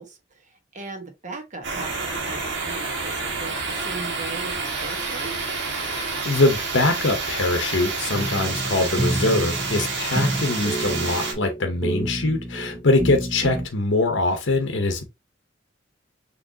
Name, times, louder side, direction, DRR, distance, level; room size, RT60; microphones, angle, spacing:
voice 1, 0.0-5.3, right 3 dB, 40° right, 1.2 m, -38 dB
sound 1, 1.6-11.3, right 4 dB, 70° right, 1.7 m, -29 dB
voice 2, 5.9-15.0, left 2 dB, 70° left, 0.9 m, -23 dB
sound 2, 8.1-13.7, right 1 dB, 20° right, 1.0 m, -29 dB
6.2 x 3.1 x 2.8 m
head